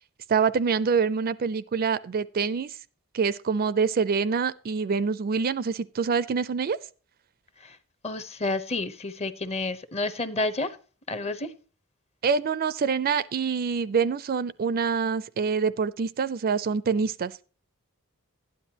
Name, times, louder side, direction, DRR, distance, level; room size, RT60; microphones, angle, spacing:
voice 1, 0.3-2.8 3.1-6.8 12.2-17.4, right 5 dB, 45° right, 0.4 m, -26 dB
voice 2, 8.0-10.8 11.1-11.5, left 2 dB, 30° left, 0.8 m, -30 dB
12.0 x 10.0 x 2.9 m
head